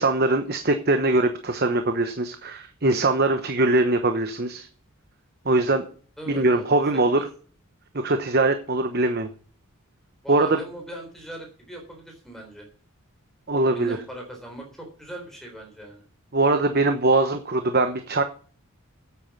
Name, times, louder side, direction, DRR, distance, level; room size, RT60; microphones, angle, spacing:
voice 1, 0.0-4.7 5.4-5.9 6.3-7.2 8.0-9.3 10.3-10.6 13.5-14.0 16.3-18.2, right 2 dB, 45° right, 8 dB, 1.0 m, -22 dB
voice 2, 6.2-6.6 7.2-7.3 10.2-12.7 13.6-16.0, right 1 dB, ahead, 1 dB, 3.8 m, -40 dB
9.2 x 8.6 x 7.0 m, 0.42 s
head